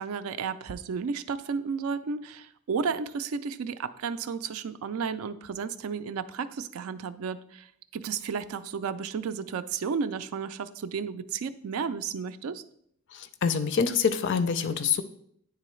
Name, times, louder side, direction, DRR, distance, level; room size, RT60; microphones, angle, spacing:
voice 1, 0.0-7.7 7.9-12.6, right 5 dB, 80° right, 12 dB, 0.4 m, -33 dB
voice 2, 13.1-15.0, left 6 dB, 55° left, 12 dB, 0.4 m, -26 dB
9.7 x 3.8 x 3.1 m, 0.69 s
head